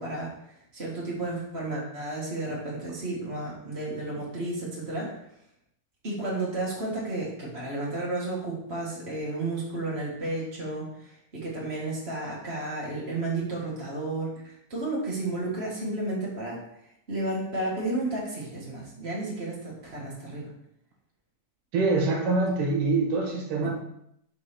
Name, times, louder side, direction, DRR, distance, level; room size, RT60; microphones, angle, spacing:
voice 1, 0.0-5.1 6.0-16.6 17.1-20.5, right 2 dB, 50° right, -5 dB, 0.7 m, -32 dB
voice 2, 21.7-23.7, right 3 dB, 70° right, 0 dB, 2.4 m, -25 dB
5.8 x 3.5 x 5.8 m, 0.75 s
omnidirectional pair, 4.2 m